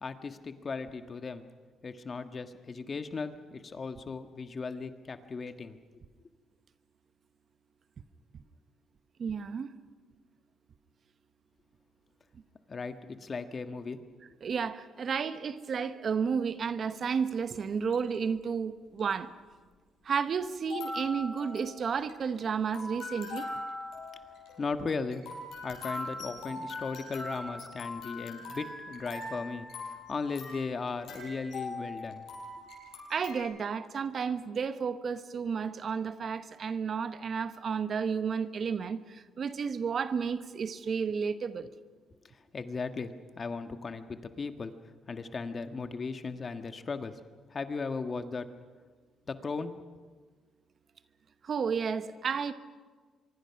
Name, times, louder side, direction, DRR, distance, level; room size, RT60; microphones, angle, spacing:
voice 1, 0.0-1.5 1.8-5.8 12.7-14.0 24.6-25.2 25.6-32.2 42.3-44.7 45.1-47.1 47.5-48.5 49.3-49.7, left 4 dB, 40° left, 1.5 m, -37 dB
voice 2, 9.2-9.7 14.4-19.3 20.0-23.5 33.1-41.7 51.4-52.5, right 6 dB, 50° right, 1.1 m, -32 dB
sound 1, 17.7-18.2 19.0-19.1 20.6-33.4, left 2 dB, 75° left, 7.4 m, -41 dB
25.0 x 23.0 x 5.9 m
cardioid pair, 90°, 0 cm